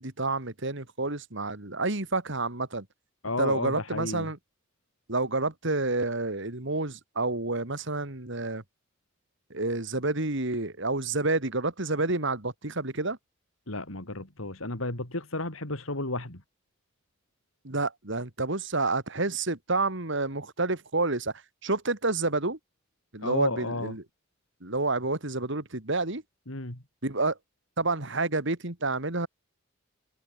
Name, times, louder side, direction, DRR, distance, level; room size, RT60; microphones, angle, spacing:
voice 1, 0.0-2.9 3.4-4.4 5.1-8.6 9.5-13.2 17.6-21.3 21.6-22.6 23.1-24.0 24.6-26.2 27.0-27.4 27.8-29.3, right 3 dB, 60° right, 2.9 m, -29 dB
voice 2, 3.2-4.3 13.7-16.4 23.2-23.9 26.5-26.8, left 2 dB, 80° left, 4.2 m, -32 dB
head